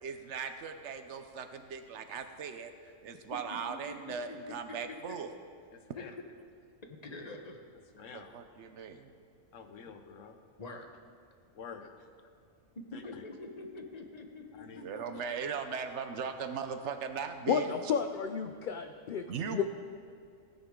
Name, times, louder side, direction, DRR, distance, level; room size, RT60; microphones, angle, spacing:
voice 1, 0.0-2.7 3.0-5.3 8.1-9.1 14.8-17.9 19.3-19.6, right 6 dB, 70° right, 8 dB, 1.0 m, -38 dB
voice 2, 3.9-5.2 6.0-6.1 6.9-7.6 8.0-8.1 10.6-10.9 12.9-15.2, left 3 dB, 35° left, 4 dB, 1.1 m, -46 dB
voice 3, 5.7-6.1 8.0-8.4 9.5-10.4 11.5-11.9 12.9-13.2 14.6-14.9, left 6 dB, 80° left, 7 dB, 1.2 m, -48 dB
voice 4, 17.5-19.2 19.5-19.6, left 7 dB, 60° left, 7 dB, 0.5 m, -31 dB
16.5 x 9.7 x 3.7 m, 2.3 s
omnidirectional pair, 1.3 m